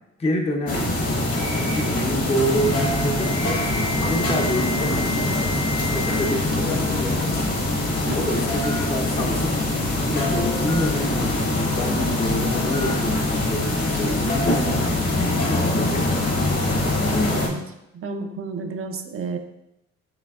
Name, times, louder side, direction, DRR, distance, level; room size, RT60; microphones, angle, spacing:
voice 1, 0.2-9.6 10.1-14.8 15.2-16.7, equal, 20° left, 2 dB, 0.6 m, -28 dB
sound 1, 0.7-17.5, left 2 dB, 50° left, 1.3 m, -23 dB
Alarm, 2.4-6.3 6.7-7.1 7.9-8.0 8.6-8.8 10.7-10.9 12.7-12.9, left 5 dB, 75° left, 0.8 m, -33 dB
voice 2, 17.9-19.4, right 4 dB, 45° right, 5 dB, 0.5 m, -31 dB
5.6 x 3.3 x 2.4 m, 0.84 s
cardioid pair, 90°, 30 cm